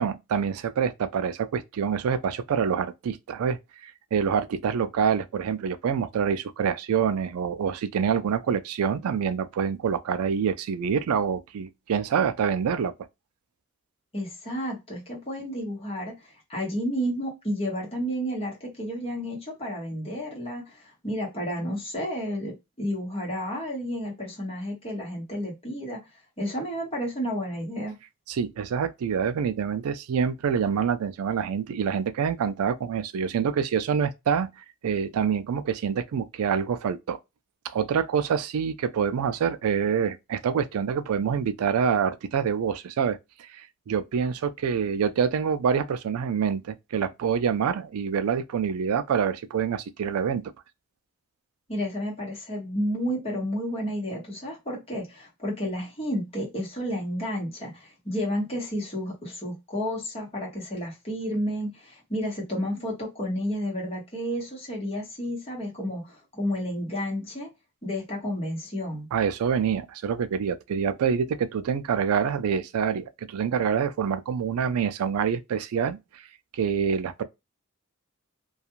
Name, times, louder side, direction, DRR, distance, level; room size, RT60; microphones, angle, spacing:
voice 1, 0.0-12.9 28.3-34.5 34.8-37.2 37.7-50.5 69.1-76.0 76.5-77.2, right 7 dB, 90° right, 0.4 m, -26 dB
voice 2, 14.1-26.0 26.4-27.9 51.7-67.5 67.8-69.1, equal, 25° left, 1.2 m, -31 dB
2.4 x 2.3 x 2.9 m
head